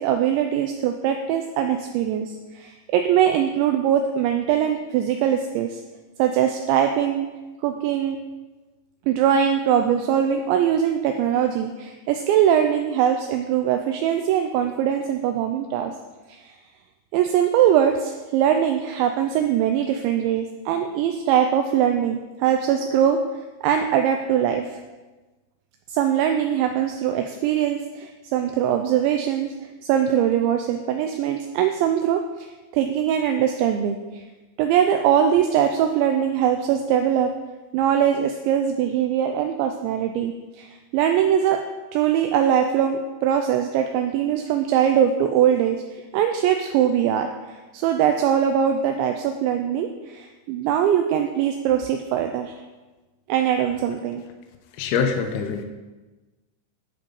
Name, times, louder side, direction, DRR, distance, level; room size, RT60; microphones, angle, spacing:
voice 1, 0.0-5.8 6.2-7.3 7.6-8.2 9.1-15.9 16.3-16.4 17.1-23.2 23.6-24.8 25.9-29.5 29.8-34.2 34.6-37.3 37.7-41.6 41.9-52.6 53.3-54.2, right 9 dB, 85° right, 5 dB, 2.7 m, -22 dB
voice 2, 54.8-55.6, left 6 dB, 90° left, 5 dB, 2.2 m, -24 dB
11.5 x 7.8 x 5.6 m, 1.2 s
omnidirectional pair, 5.7 m